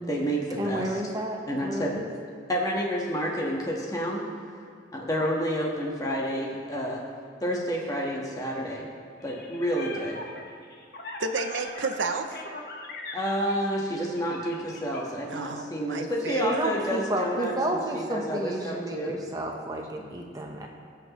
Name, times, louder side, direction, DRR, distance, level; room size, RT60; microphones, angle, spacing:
voice 1, 0.1-0.9 1.5-1.9 2.5-4.2 4.9-7.0 7.4-8.9 9.2-10.2 13.1-19.2, equal, 20° left, -2 dB, 1.3 m, -29 dB
voice 2, 0.6-2.1 16.4-20.7, right 1 dB, 20° right, 1 dB, 0.9 m, -31 dB
sound 1, 9.2-15.0, left 2 dB, 55° left, 1.1 m, -40 dB
voice 3, 11.2-12.4 15.3-16.7, right 4 dB, 85° right, 7 dB, 0.6 m, -32 dB
19.0 x 6.5 x 3.0 m, 2.3 s
head